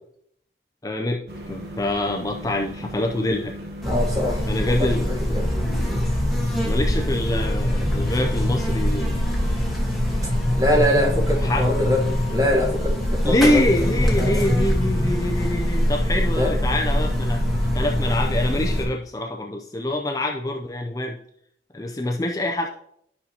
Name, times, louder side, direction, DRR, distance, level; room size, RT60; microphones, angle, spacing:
voice 1, 0.8-3.5 4.5-5.1 6.6-9.2 11.4-11.7 13.2-17.4 17.7-21.2 21.7-22.7, left 1 dB, 20° left, 1 dB, 0.4 m, -25 dB
sound 1, 1.3-18.9, equal, 65° right, 1.1 m, -37 dB
Buzz, 3.8-18.8, equal, ahead, 1.3 m, -23 dB
voice 2, 3.8-4.9 5.3-5.5 5.8-6.0 10.6-13.7 14.2-14.5 16.3-16.5, left 1 dB, 20° right, 0 dB, 1.3 m, -24 dB
12.0 x 5.6 x 2.8 m, 0.72 s
head